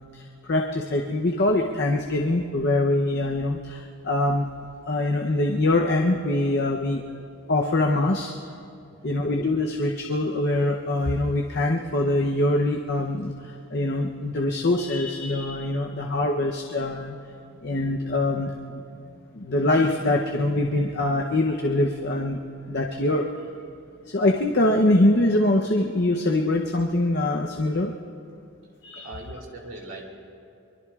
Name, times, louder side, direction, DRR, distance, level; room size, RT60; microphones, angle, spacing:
voice 1, 0.0-4.5 4.9-7.0 7.5-8.3 9.0-17.2 17.6-18.8 19.3-22.4 22.7-23.3 24.1-27.9 28.8-29.1, left 2 dB, 50° left, 1 dB, 0.7 m, -24 dB
voice 2, 29.0-30.1, right 2 dB, 65° right, 0 dB, 2.6 m, -40 dB
24.0 x 23.5 x 2.4 m, 2.5 s
head